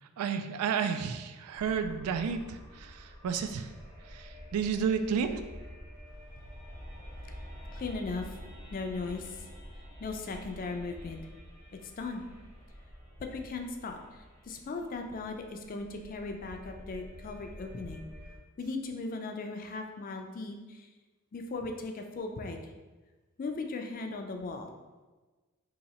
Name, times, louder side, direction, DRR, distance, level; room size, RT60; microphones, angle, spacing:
voice 1, 0.2-3.7 4.1-5.4, right 6 dB, 90° right, 8 dB, 0.3 m, -31 dB
sound 1, 1.5-18.4, equal, 45° right, 1.0 m, -48 dB
voice 2, 7.7-8.4 8.7-9.5 10.0-11.2 11.8-12.2 13.2-18.1 18.6-20.9 21.3-22.7 23.4-24.7, left 3 dB, 40° left, 4 dB, 0.4 m, -38 dB
2.8 x 2.7 x 4.1 m, 1.2 s
head